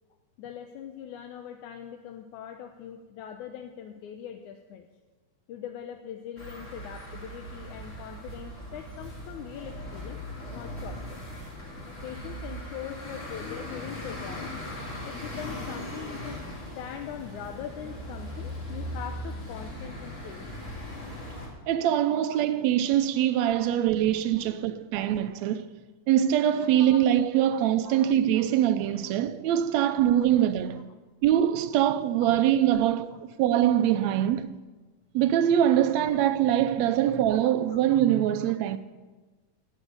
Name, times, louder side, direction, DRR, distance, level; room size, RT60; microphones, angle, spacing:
voice 1, 0.4-4.9 5.5-10.2 10.5-11.2 12.0-14.5 15.0-16.4 16.8-20.5 24.5-24.6 27.4-28.0 32.7-32.8 37.7-37.8, left 9 dB, 80° left, 2.2 m, -41 dB
sound 1, 6.4-21.5, left 1 dB, 25° left, 3.2 m, -39 dB
voice 2, 21.7-25.7 26.1-30.8 31.2-34.5 35.1-38.8, right 11 dB, 75° right, 1.8 m, -23 dB
17.5 x 7.2 x 9.3 m
omnidirectional pair, 3.5 m